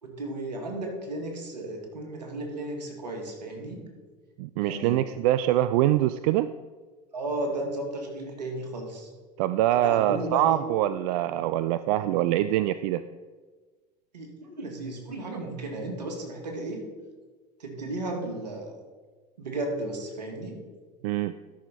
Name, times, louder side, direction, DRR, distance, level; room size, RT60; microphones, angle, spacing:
voice 1, 0.0-3.9 4.6-5.0 7.1-9.1 9.8-10.6 14.1-16.9 17.6-18.7 19.4-20.6, right 2 dB, 90° right, 2 dB, 2.0 m, -34 dB
voice 2, 4.4-6.5 9.4-13.0 21.0-21.3, right 13 dB, 65° right, 13 dB, 0.4 m, -24 dB
13.0 x 6.3 x 4.2 m, 1.4 s
hypercardioid pair, 80°, 21 cm